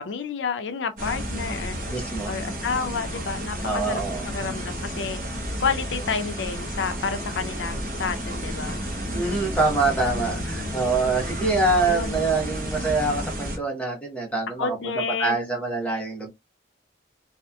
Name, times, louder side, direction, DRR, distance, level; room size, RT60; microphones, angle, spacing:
voice 1, 0.0-2.0 2.3-5.2 5.6-8.8 10.2-10.8 11.8-12.2 14.6-15.5, left 5 dB, 85° left, 0.4 m, -30 dB
sound 1, 1.0-13.6, equal, 45° right, 0.9 m, -31 dB
voice 2, 1.9-2.3 3.6-4.3 9.1-14.8 15.2-16.3, right 3 dB, 5° left, 0.8 m, -25 dB
2.8 x 2.4 x 2.2 m
head